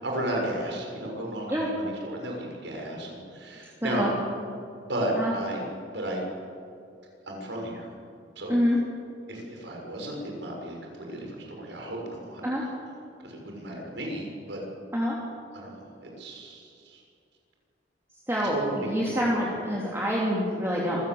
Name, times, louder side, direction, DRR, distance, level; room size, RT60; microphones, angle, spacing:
voice 1, 0.0-4.1 4.8-6.2 7.3-7.9 8.3-8.6 9.3-12.4 13.2-14.6 15.5-17.0 18.5-19.5, right 1 dB, 75° right, 0 dB, 6.5 m, -34 dB
voice 2, 3.8-4.1 5.2-5.3 8.5-8.8 12.4-12.6 14.9-15.2 18.3-21.0, equal, 15° right, -5 dB, 3.0 m, -26 dB
26.0 x 16.5 x 7.9 m, 2.5 s
head